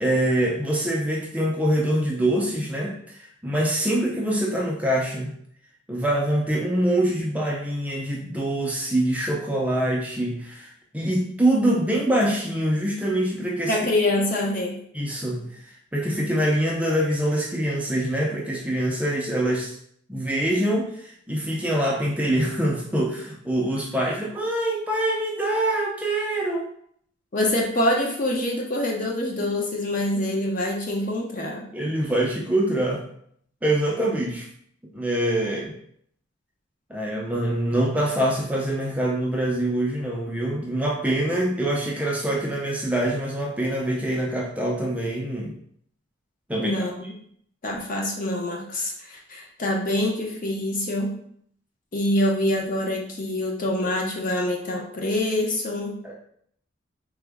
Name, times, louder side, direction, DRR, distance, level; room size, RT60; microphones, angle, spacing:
voice 1, 0.0-5.3 5.9-13.8 14.9-19.8 20.1-26.7 31.7-33.0 33.6-34.5 34.9-35.7 36.9-45.5 46.5-46.8 56.0-56.1, right 1 dB, 5° right, -3 dB, 0.4 m, -24 dB
voice 2, 13.7-14.8 27.3-31.7 46.6-46.9 47.6-51.1 51.9-56.0, left 1 dB, 40° left, 0 dB, 0.6 m, -25 dB
3.5 x 2.0 x 3.4 m, 0.64 s
head